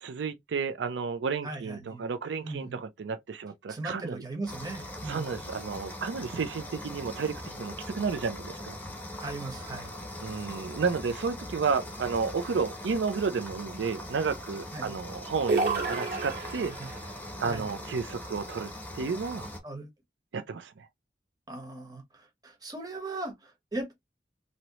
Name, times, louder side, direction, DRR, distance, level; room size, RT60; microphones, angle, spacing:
voice 1, 0.0-4.2 5.0-8.8 10.2-16.7 17.4-19.5 20.3-20.9, right 5 dB, 85° right, 0.4 m, -32 dB
voice 2, 1.4-2.0 2.4-2.8 3.7-5.3 9.2-9.9 14.7-14.9 16.8-16.9 17.5-17.7 19.6-19.9 21.5-23.9, right 2 dB, 20° right, 1.0 m, -38 dB
sound 1, 4.5-19.6, left 1 dB, 10° left, 0.9 m, -41 dB
sound 2, 15.5-17.0, right 3 dB, 55° right, 1.6 m, -29 dB
3.0 x 2.7 x 2.9 m
head